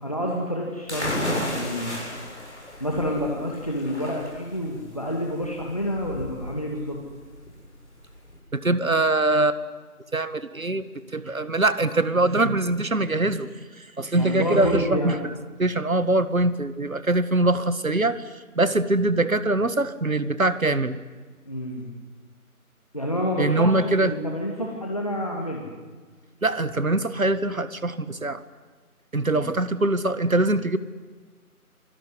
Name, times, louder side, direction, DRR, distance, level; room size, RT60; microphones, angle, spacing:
voice 1, 0.0-1.2 1.4-2.0 2.8-7.0 14.1-15.2 21.5-21.9 22.9-25.7 29.3-29.5, equal, 25° left, -1 dB, 2.0 m, -28 dB
sound 1, 0.9-8.4, left 1 dB, 50° left, 7.6 m, -33 dB
voice 2, 8.5-9.6 10.1-10.8 11.1-13.5 14.0-15.1 15.6-18.2 18.6-21.0 23.4-24.1 26.4-28.4 29.1-30.8, right 2 dB, 65° right, 14 dB, 1.8 m, -23 dB
27.0 x 19.0 x 9.7 m, 1.4 s
figure-of-eight pair, 175°, 44 cm